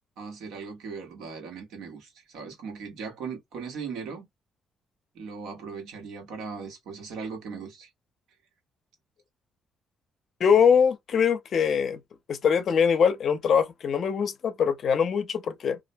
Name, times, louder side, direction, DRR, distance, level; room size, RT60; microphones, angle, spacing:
voice 1, 0.2-4.3 5.1-7.9, right 5 dB, 85° right, 1.2 m, -38 dB
voice 2, 10.4-12.0 12.3-15.8, left 7 dB, 60° left, 0.5 m, -23 dB
2.5 x 2.1 x 2.6 m
cardioid pair, 90°, 0 cm